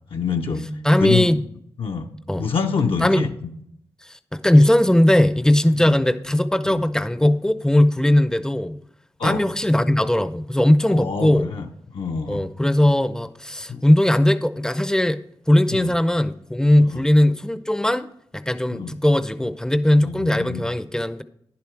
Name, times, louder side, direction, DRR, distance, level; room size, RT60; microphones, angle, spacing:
voice 1, 0.1-0.7 1.0-1.3 1.8-2.1 2.4-3.3 5.7-5.9 6.6-6.8 9.2-9.4 10.8-11.7 11.9-12.4 13.7-13.8 15.7-15.9 16.8-17.0 18.7-18.9 20.0-20.7, left 5 dB, 70° left, 2 dB, 0.9 m, -26 dB
voice 2, 0.8-1.4 2.3-2.5 3.0-3.3 4.3-8.8 9.2-11.5 12.3-15.2 15.5-18.1 18.3-21.2, left 1 dB, 5° left, 13 dB, 0.6 m, -18 dB
10.5 x 6.9 x 4.6 m, 0.71 s
cardioid pair, 75°, 10 cm